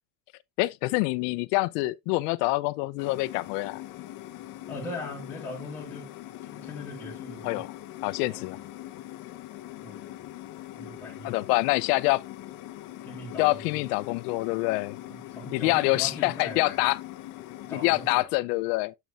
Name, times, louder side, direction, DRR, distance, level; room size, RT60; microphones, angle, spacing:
voice 1, 0.6-3.8 7.4-7.7 8.0-8.6 11.2-12.2 13.4-15.0 15.5-17.0 17.8-18.9, left 21 dB, 85° left, 0.7 m, -26 dB
sound 1, 3.0-18.2, left 14 dB, 45° left, 0.9 m, -42 dB
voice 2, 4.7-6.1 6.5-7.6 8.2-8.6 9.8-10.3 10.8-11.4 13.0-13.8 15.1-16.8 17.7-18.3, left 2 dB, 5° left, 1.9 m, -40 dB
7.3 x 7.0 x 2.4 m
cardioid pair, 165°, 46 cm